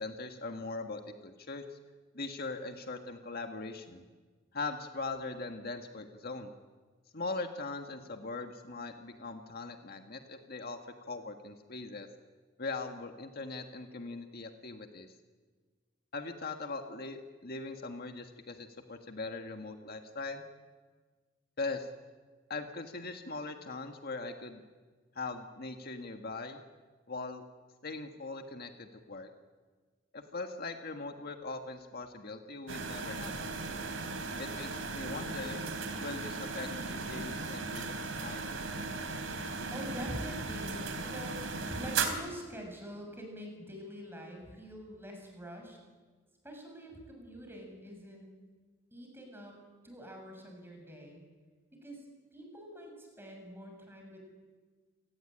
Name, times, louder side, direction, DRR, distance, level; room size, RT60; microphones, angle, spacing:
voice 1, 0.0-1.8 2.1-4.0 4.5-6.5 7.1-12.1 12.6-15.1 16.1-20.4 21.6-21.9 22.5-24.6 25.2-26.6 27.1-27.4 27.8-29.3 30.1-33.8 34.4-35.7 36.0-38.4, left 3 dB, 50° left, 5 dB, 1.7 m, -41 dB
sound 1, 32.7-42.1, right 4 dB, 85° right, 3.5 m, -37 dB
voice 2, 39.7-45.8 46.4-48.3 48.9-51.2 51.8-52.0 52.3-54.2, equal, 10° right, 2 dB, 6.9 m, -45 dB
29.5 x 18.5 x 8.9 m, 1.4 s
head